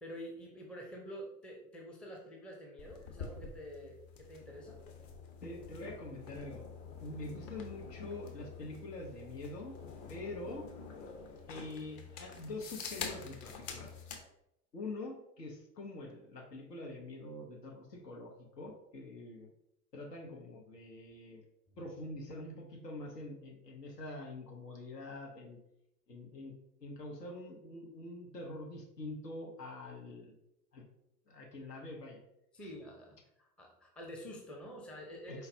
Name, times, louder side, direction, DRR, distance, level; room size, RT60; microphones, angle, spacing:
voice 1, 0.0-4.8 20.7-20.8 21.7-21.8 32.5-35.5, equal, ahead, -1 dB, 0.4 m, -48 dB
sound 1, 2.8-14.2, left 5 dB, 40° left, 0.8 m, -47 dB
voice 2, 5.4-6.7 7.0-9.8 10.1-10.7 11.5-13.9 14.7-19.5 19.9-21.4 21.8-25.6 26.1-26.5 26.8-30.3 30.7-30.8 31.3-32.2 32.6-32.7 35.3-35.5, left 2 dB, 80° left, 0 dB, 0.9 m, -45 dB
4.4 x 3.9 x 2.6 m, 0.82 s
figure-of-eight pair, 80°, 48 cm